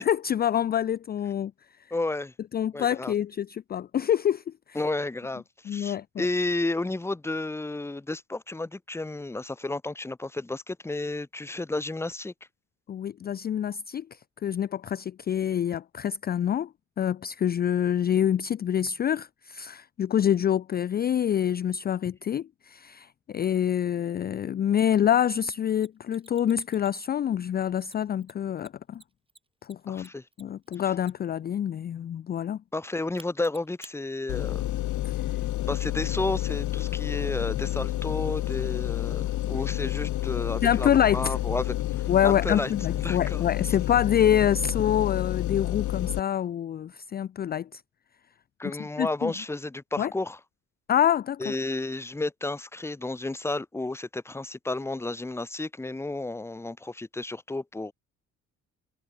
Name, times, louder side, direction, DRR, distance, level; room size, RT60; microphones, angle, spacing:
voice 1, 0.0-1.5 2.5-4.8 5.7-6.3 12.9-16.7 17.0-29.0 29.6-30.1 30.4-32.6 35.0-35.1 39.5-39.6 40.6-41.4 42.1-47.8 49.0-49.3 50.0-50.1 50.9-51.5, left 9 dB, 35° left, 0.4 m, -26 dB
voice 2, 1.9-2.3 2.7-3.1 4.7-12.3 29.9-30.2 32.7-34.7 35.7-43.4 48.6-50.4 51.4-57.9, left 2 dB, 10° left, 0.7 m, -32 dB
Mechanisms, 24.8-24.9 25.8-27.3 27.8-31.4 33.2-33.9, right 3 dB, 15° right, 3.6 m, -52 dB
sound 1, 34.3-46.2, left 15 dB, 75° left, 0.8 m, -29 dB
cardioid pair, 90°, 30 cm